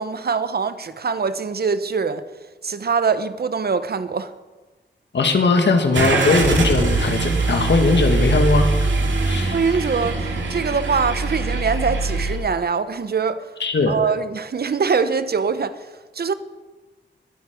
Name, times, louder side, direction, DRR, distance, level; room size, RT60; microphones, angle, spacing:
voice 1, 0.0-2.2 2.6-4.3 9.5-13.5 13.9-15.8 16.1-16.3, right 5 dB, 55° right, 0.8 m, -23 dB
voice 2, 5.1-8.7 9.3-9.6 13.6-14.0, left 3 dB, 70° left, 1.7 m, -19 dB
Car / Engine starting, 5.9-12.4, right 3 dB, 80° right, 2.3 m, -22 dB
20.5 x 7.5 x 5.1 m
wide cardioid pair, 75°, 19 cm